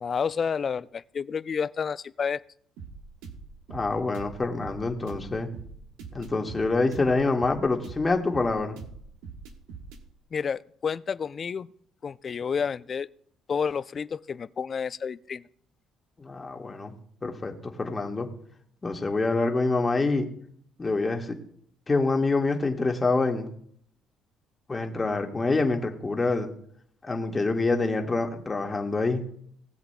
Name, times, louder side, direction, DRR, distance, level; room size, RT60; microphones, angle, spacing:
voice 1, 0.0-2.4 10.3-11.7 12.0-13.1 13.5-15.4, left 6 dB, 45° left, 17 dB, 0.4 m, -30 dB
sound 1, 2.8-10.0, right 5 dB, 80° right, 1.4 m, -43 dB
voice 2, 3.7-5.5 6.1-8.8 16.2-16.9 17.2-18.3 18.8-20.3 20.8-21.4 21.9-23.5 24.7-26.5 27.0-29.2, left 3 dB, 25° left, 3 dB, 1.8 m, -26 dB
19.0 x 8.0 x 2.3 m, 0.63 s
hypercardioid pair, 55°, 0 cm